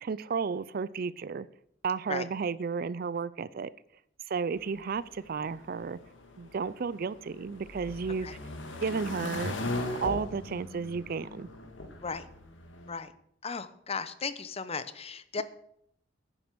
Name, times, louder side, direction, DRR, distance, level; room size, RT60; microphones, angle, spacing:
voice 1, 0.0-1.5 1.8-3.7 4.3-6.0 6.4-8.3 8.8-9.5 10.0-11.5, right 5 dB, 50° right, 18 dB, 0.4 m, -33 dB
sound 1, 4.6-12.9, left 2 dB, 85° left, 1.8 m, -39 dB
voice 2, 13.4-15.4, left 5 dB, 35° left, 13 dB, 0.8 m, -36 dB
10.5 x 9.1 x 6.1 m, 0.71 s
head